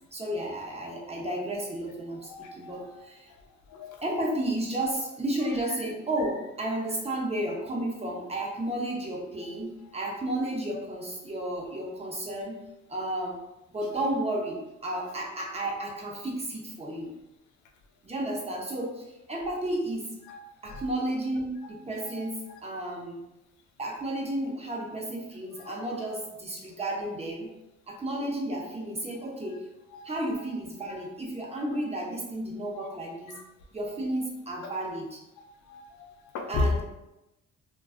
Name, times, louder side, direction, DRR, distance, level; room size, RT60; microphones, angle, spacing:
voice 1, 0.1-3.3 4.0-12.6 12.9-13.4 13.7-17.1 18.0-20.1 20.6-23.2 23.8-27.5 27.9-29.6 30.0-33.3 33.7-35.2 36.5-36.8, right 1 dB, 20° right, -1 dB, 0.5 m, -32 dB
voice 2, 2.3-3.0 3.7-4.0 13.9-14.0 14.9-15.0 20.3-20.4 20.7-20.8 22.0-22.2 22.5-22.6 25.7-25.8 29.9-30.0 35.7-36.7, left 3 dB, 70° left, 3 dB, 0.5 m, -35 dB
2.3 x 2.2 x 2.4 m, 0.94 s
cardioid pair, 90°, 30 cm